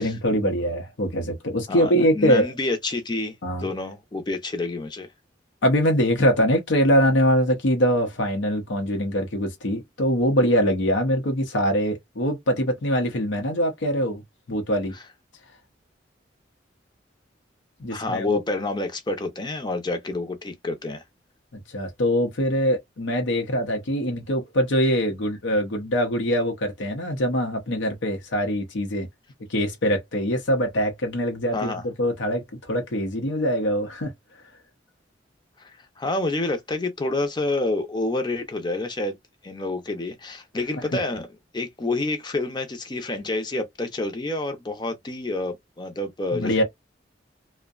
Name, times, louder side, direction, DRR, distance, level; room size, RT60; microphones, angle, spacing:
voice 1, 0.0-2.5 3.4-3.7 5.6-14.2 14.5-14.9 17.8-18.4 21.7-29.1 29.5-31.7 32.0-34.1 46.3-46.6, equal, 90° left, 0.7 m, -23 dB
voice 2, 1.7-3.4 3.6-5.1 17.9-21.0 31.5-31.9 35.6-39.2 39.4-41.3 41.5-46.6, left 2 dB, 25° left, 0.5 m, -28 dB
2.6 x 2.1 x 2.3 m
head